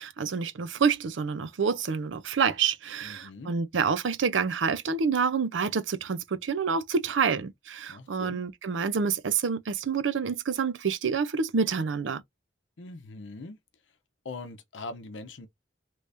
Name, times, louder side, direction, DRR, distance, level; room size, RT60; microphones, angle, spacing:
voice 1, 0.0-12.2, right 5 dB, 90° right, 0.5 m, -28 dB
voice 2, 3.0-3.5 7.9-8.4 12.8-13.6 14.2-15.5, left 3 dB, 80° left, 0.7 m, -41 dB
3.3 x 3.1 x 2.6 m
head